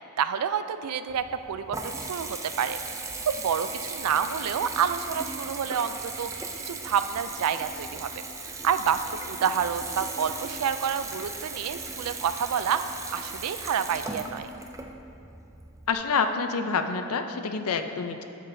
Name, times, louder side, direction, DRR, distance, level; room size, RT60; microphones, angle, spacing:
voice 1, 0.2-2.8 3.2-6.3 6.7-8.1 8.6-12.8 13.1-14.5, right 7 dB, 85° right, 11 dB, 0.4 m, -28 dB
Water tap faucet / Bathtub (filling or washing) / Trickle dribble, 1.1-15.9, right 3 dB, 15° right, 0.4 m, -37 dB
voice 2, 15.9-18.2, left 5 dB, 75° left, 7 dB, 0.5 m, -27 dB
11.0 x 7.5 x 2.7 m, 2.7 s
head